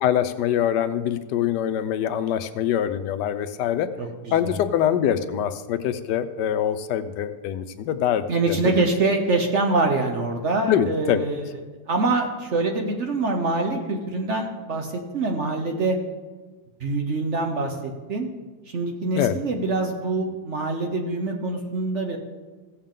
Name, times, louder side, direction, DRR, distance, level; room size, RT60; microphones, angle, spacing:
voice 1, 0.0-3.9 4.3-8.8 10.7-11.2 19.1-19.4, left 10 dB, 80° left, 11 dB, 1.2 m, -24 dB
voice 2, 4.0-4.6 8.3-11.4 11.9-16.0 16.8-18.3 18.7-22.2, right 3 dB, 50° right, 3 dB, 1.0 m, -25 dB
16.0 x 7.2 x 3.7 m, 1.3 s
omnidirectional pair, 1.9 m